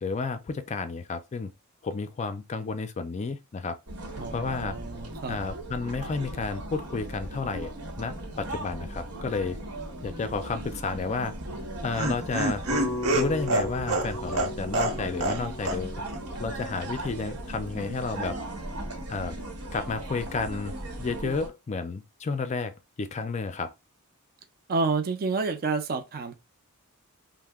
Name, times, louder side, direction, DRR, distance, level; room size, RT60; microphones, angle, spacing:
voice 1, 0.0-1.5 1.8-3.8 4.3-4.8 5.3-7.7 8.0-9.6 10.0-11.3 11.8-12.6 13.1-16.0 16.4-18.4 19.1-19.4 19.7-23.7, left 4 dB, 30° left, 0.3 m, -31 dB
sound 1, 3.9-21.5, right 1 dB, 90° right, 1.0 m, -38 dB
voice 2, 4.2-5.4 24.7-26.4, right 4 dB, 45° right, 0.4 m, -29 dB
Laughter, 11.4-15.4 15.7-15.8 16.1-16.2, right 2 dB, 65° right, 0.8 m, -27 dB
sound 2, 12.7-17.0, left 1 dB, 5° left, 0.7 m, -37 dB
2.8 x 2.1 x 3.4 m
head